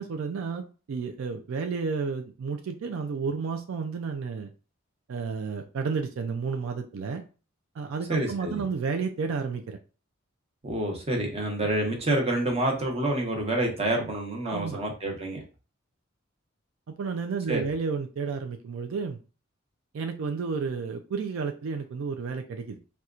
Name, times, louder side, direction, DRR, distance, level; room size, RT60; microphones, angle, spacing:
voice 1, 0.0-4.5 5.1-7.2 7.8-9.8 14.5-14.8 16.9-19.2 19.9-22.8, right 5 dB, 75° right, 5 dB, 0.4 m, -31 dB
voice 2, 8.1-8.6 10.6-15.4 17.5-17.6, right 1 dB, 30° right, 1 dB, 0.9 m, -28 dB
4.2 x 2.3 x 2.4 m, 0.35 s
head